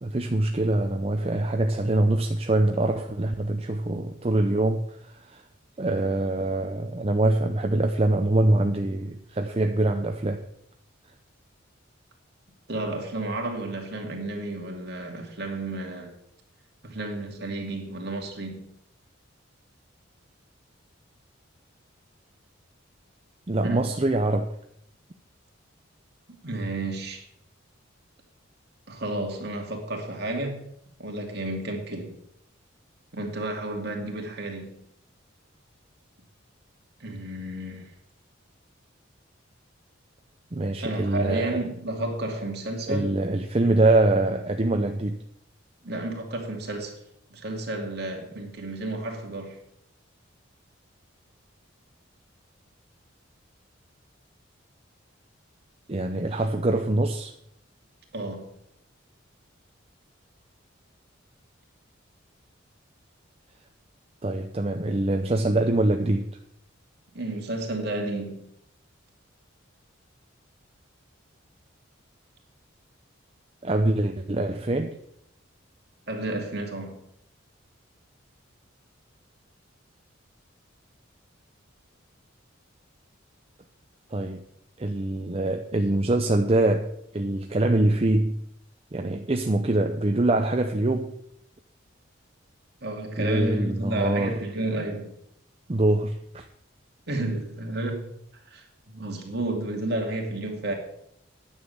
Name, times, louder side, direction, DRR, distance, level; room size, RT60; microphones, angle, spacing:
voice 1, 0.0-5.4 5.8-10.4 23.5-24.5 40.5-41.6 42.9-45.2 55.9-57.3 64.2-66.2 73.6-75.0 84.1-84.4 84.8-88.4 88.9-91.1 93.2-94.4 95.7-96.5, right 2 dB, 30° right, 0.6 m, -24 dB
voice 2, 12.7-16.1 16.8-18.7 23.6-23.9 26.3-27.2 28.9-30.6 31.0-32.2 33.1-34.8 37.0-37.9 40.8-43.2 45.8-47.0 47.3-49.6 58.1-58.5 67.1-68.5 76.1-77.0 92.8-95.1 97.1-98.1 98.5-100.7, right 2 dB, 55° right, 2.6 m, -31 dB
10.0 x 7.2 x 8.0 m
head